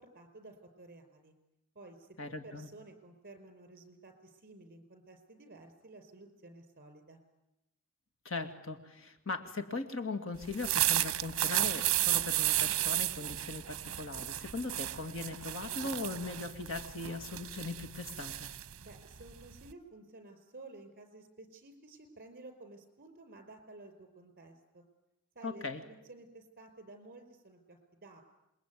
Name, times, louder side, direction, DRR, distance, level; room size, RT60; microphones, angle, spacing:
voice 1, 0.0-1.3 1.7-7.2 18.8-24.8 25.3-28.2, right 2 dB, 40° right, 7 dB, 4.8 m, -53 dB
voice 2, 2.2-2.7 8.2-18.5 25.4-25.8, left 3 dB, 60° left, 6 dB, 2.4 m, -39 dB
sound 1, 10.4-19.7, right 14 dB, 65° right, 0.9 m, -33 dB
27.5 x 21.5 x 9.4 m, 0.90 s
head